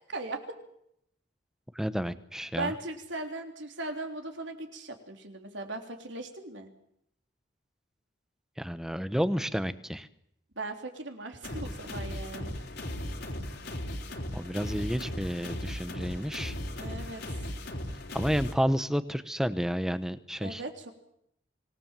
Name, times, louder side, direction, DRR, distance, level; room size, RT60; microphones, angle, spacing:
voice 1, 0.1-0.6 2.5-6.7 10.6-12.5 16.8-17.5 20.4-20.9, right 2 dB, 80° right, 4 dB, 3.6 m, -38 dB
voice 2, 1.7-2.7 8.6-10.1 14.3-16.5 18.1-20.6, equal, 5° right, 12 dB, 1.0 m, -30 dB
sound 1, 11.4-18.5, left 1 dB, 60° left, 3.6 m, -37 dB
25.5 x 18.5 x 7.5 m, 0.73 s
head